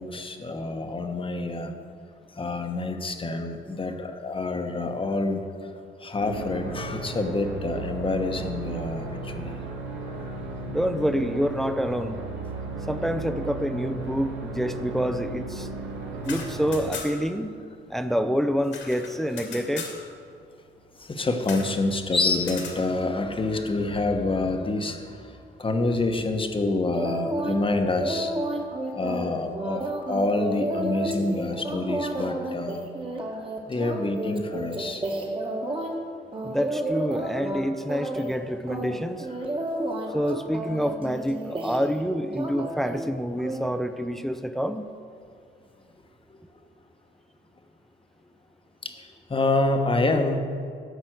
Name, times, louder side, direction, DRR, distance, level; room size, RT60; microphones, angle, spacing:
voice 1, 0.0-1.7 2.4-5.4 6.0-9.5 21.1-25.0 25.6-28.3 28.9-29.8 30.1-32.9 33.7-35.0 48.8-48.9 49.3-50.4, left 2 dB, 25° left, 5 dB, 1.2 m, -27 dB
sound 1, 6.2-16.9, right 3 dB, 75° right, 1.9 m, -35 dB
voice 2, 10.7-12.2 12.9-15.7 16.2-17.6 17.9-19.9 36.4-39.6 40.1-44.9, equal, ahead, 9 dB, 0.6 m, -27 dB
sound 2, 16.1-17.4 17.6-17.7 18.0-20.0 21.4-21.7 22.4-22.8, left 5 dB, 75° left, 2.3 m, -38 dB
sound 3, 26.9-27.6 28.0-35.9 36.3-37.6 37.9-38.4 38.7-42.0 42.3-43.0 43.4-43.6, right 1 dB, 25° right, 1.7 m, -31 dB
13.0 x 5.3 x 7.8 m, 2.3 s
cardioid pair, 90°, 20 cm